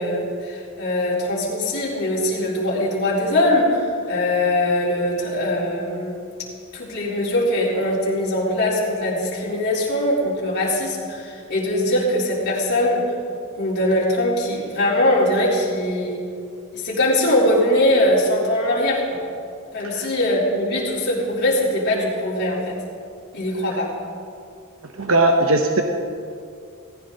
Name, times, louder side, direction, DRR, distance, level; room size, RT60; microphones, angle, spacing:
voice 1, 0.0-6.3 6.7-13.1 13.5-16.3 16.7-19.2 19.7-22.8 23.3-23.9, left 1 dB, 50° left, -5 dB, 3.9 m, -21 dB
voice 2, 25.0-25.8, right 2 dB, 70° right, 4 dB, 0.9 m, -18 dB
18.0 x 15.5 x 4.0 m, 2.4 s
head